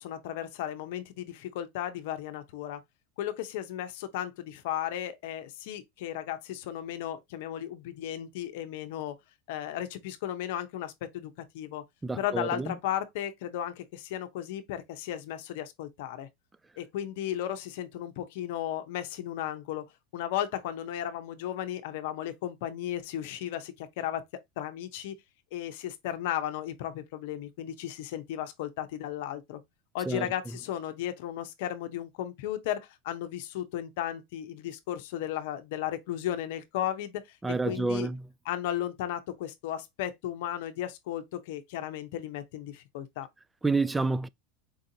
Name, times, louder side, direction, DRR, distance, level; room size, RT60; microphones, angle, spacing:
voice 1, 0.0-2.8 3.2-9.1 9.5-11.8 12.1-16.3 16.8-19.8 20.1-24.2 24.6-25.2 25.5-29.6 29.9-37.4 37.7-38.1 38.4-43.3, left 11 dB, 70° left, 0.7 m, -35 dB
voice 2, 12.0-12.8 30.1-30.3 37.4-38.2 43.6-44.3, right 3 dB, 10° right, 0.3 m, -28 dB
4.7 x 2.5 x 2.7 m
hypercardioid pair, 105°, 0 cm